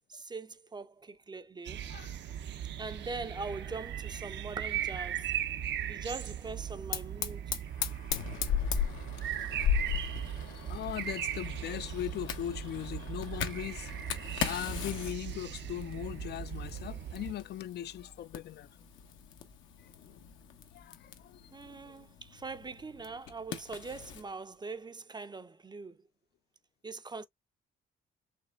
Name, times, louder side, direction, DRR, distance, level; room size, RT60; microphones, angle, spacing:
voice 1, 0.1-1.9 2.8-5.3 5.9-7.5 21.5-26.0 26.8-27.2, right 4 dB, 20° right, 0.5 m, -42 dB
sound 1, 1.6-17.3, right 10 dB, 65° right, 0.6 m, -38 dB
Fire, 6.9-24.3, left 8 dB, 80° left, 1.0 m, -38 dB
voice 2, 10.5-18.7 20.7-22.0, left 12 dB, 55° left, 0.4 m, -40 dB
5.1 x 3.2 x 2.3 m
cardioid pair, 90°, 20 cm